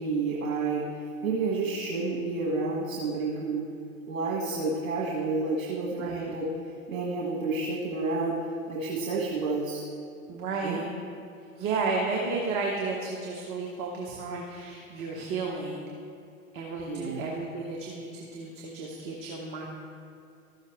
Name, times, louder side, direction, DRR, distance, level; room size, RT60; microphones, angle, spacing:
voice 1, 0.0-3.6 4.1-6.5 6.9-8.4 8.7-9.8 10.6-10.8 16.9-17.3, right 3 dB, 70° right, -4 dB, 1.5 m, -30 dB
voice 2, 10.3-10.9 11.6-15.9 16.5-19.7, right 4 dB, 35° right, -1 dB, 1.2 m, -32 dB
13.5 x 6.4 x 3.6 m, 2.5 s
figure-of-eight pair, 100°, 42 cm